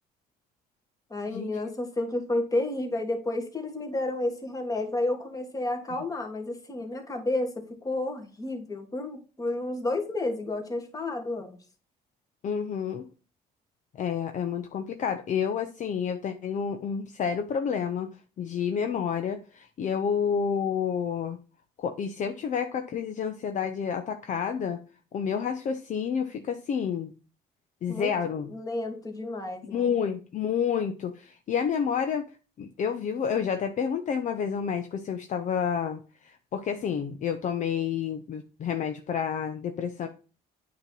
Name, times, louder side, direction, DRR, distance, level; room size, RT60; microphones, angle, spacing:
voice 1, 1.1-11.6 27.9-28.1 28.4-29.9, left 2 dB, 20° left, 4 dB, 1.6 m, -31 dB
voice 2, 12.4-13.0 14.0-18.1 18.4-21.4 21.8-24.8 25.1-27.1 27.8-28.5 29.7-32.3 32.6-40.1, left 7 dB, 45° left, 6 dB, 0.7 m, -29 dB
8.7 x 3.0 x 5.4 m, 0.36 s
cardioid pair, 110°, 17 cm